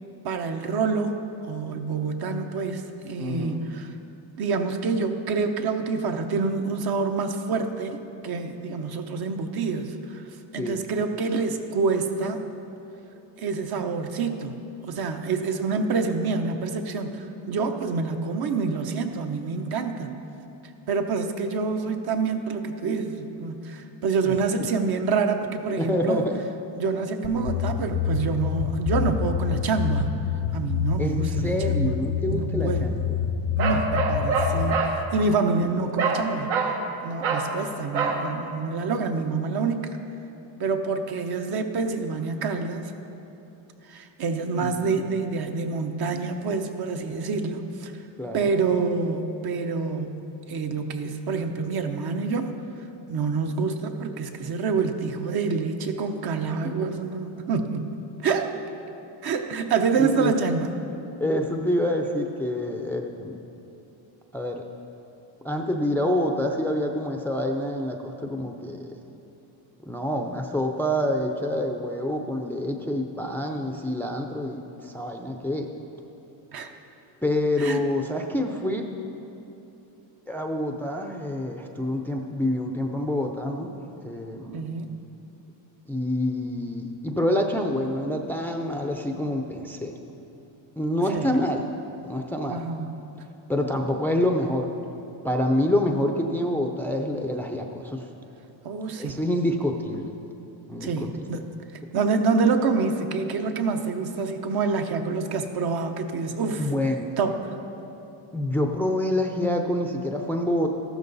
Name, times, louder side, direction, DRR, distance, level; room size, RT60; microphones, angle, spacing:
voice 1, 0.2-3.9 4.4-8.0 8.2-10.2 10.5-12.4 13.4-20.1 20.9-26.2 26.8-30.1 30.5-31.9 32.3-32.9 33.6-36.5 37.0-40.0 40.6-42.9 43.9-47.9 48.3-50.2 50.5-52.5 53.1-57.9 58.2-58.5 59.2-60.7 76.5-76.7 77.6-77.8 84.5-85.0 91.1-91.4 92.5-92.9 98.6-99.2 100.8-101.4 101.9-106.7 107.2-107.6, right 4 dB, 50° right, 5 dB, 1.0 m, -27 dB
voice 2, 3.2-3.6 10.6-10.8 24.2-24.7 25.7-26.4 31.0-33.1 44.6-45.1 48.2-48.5 60.0-60.3 61.2-63.4 64.3-64.7 65.4-69.0 69.8-75.7 77.2-78.9 80.3-83.7 84.0-84.7 85.9-90.0 90.8-91.7 92.0-92.6 93.5-94.7 95.2-98.1 99.0-100.1 100.7-101.4 106.6-107.1 108.3-110.7, left 1 dB, 5° left, 2 dB, 0.5 m, -27 dB
sound 1, 27.2-34.6, left 7 dB, 90° left, 1.3 m, -27 dB
Bark, 33.6-35.0 36.0-36.2 36.5-36.8 37.2-37.5 37.9-38.2, right 4 dB, 75° right, 1.5 m, -25 dB
14.0 x 12.5 x 4.0 m, 2.9 s
cardioid pair, 140°, 47 cm